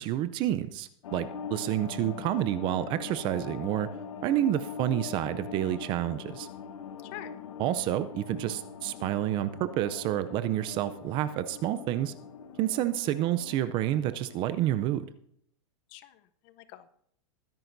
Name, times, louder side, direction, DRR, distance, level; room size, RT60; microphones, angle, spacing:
voice 1, 0.0-3.9 4.2-6.5 7.6-12.1 12.6-15.0, right 13 dB, 30° right, 13 dB, 0.5 m, -29 dB
sound 1, 1.0-14.8, left 6 dB, 80° left, 1.1 m, -42 dB
voice 2, 7.0-7.3 15.9-16.9, left 13 dB, 40° left, 13 dB, 0.7 m, -46 dB
22.0 x 10.5 x 2.6 m, 0.68 s
supercardioid pair, 150°, 16 cm